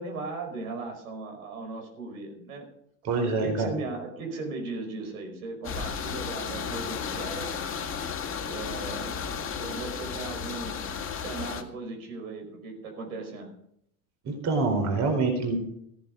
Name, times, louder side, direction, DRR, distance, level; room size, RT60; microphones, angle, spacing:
voice 1, 0.0-2.7 3.3-7.8 8.5-9.3 9.6-10.8 11.2-13.5, right 3 dB, 80° right, 3 dB, 5.2 m, -37 dB
voice 2, 3.0-3.7 14.2-15.5, right 3 dB, 40° right, 4 dB, 4.3 m, -26 dB
sound 1, 5.6-11.6, left 6 dB, 30° left, 2.1 m, -33 dB
15.0 x 10.5 x 5.2 m, 0.71 s
hypercardioid pair, 100°, 42 cm